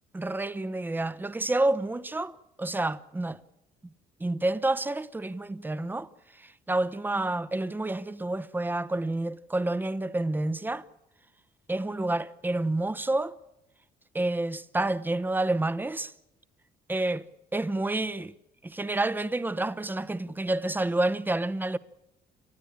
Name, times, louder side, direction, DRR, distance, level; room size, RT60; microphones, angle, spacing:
voice 1, 0.1-3.4 4.2-6.1 6.4-10.8 11.7-13.3 14.1-16.1 16.9-17.2 17.5-18.3 18.6-21.8, right 2 dB, 10° right, 0.9 m, -29 dB
29.5 x 13.5 x 8.8 m
cardioid pair, 110°, 17 cm